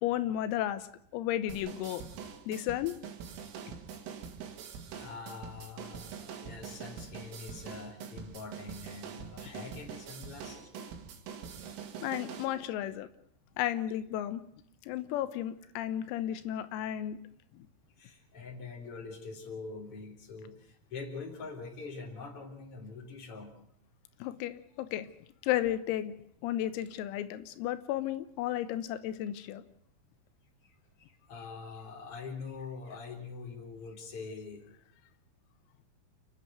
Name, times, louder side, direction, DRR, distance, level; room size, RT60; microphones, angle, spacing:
voice 1, 0.0-0.9 1.1-2.0 2.5-3.0 12.0-13.1 13.6-14.4 14.8-17.2 17.5-17.7 24.2-25.1 25.4-26.1 26.4-29.6, left 12 dB, 90° left, 12 dB, 3.8 m, -33 dB
sound 1, 1.5-12.5, right 7 dB, 75° right, 4.7 m, -44 dB
voice 2, 4.9-10.9 18.0-23.5 30.6-34.7, left 4 dB, 30° left, 3 dB, 4.1 m, -44 dB
30.0 x 10.5 x 9.2 m, 0.69 s
omnidirectional pair, 6.0 m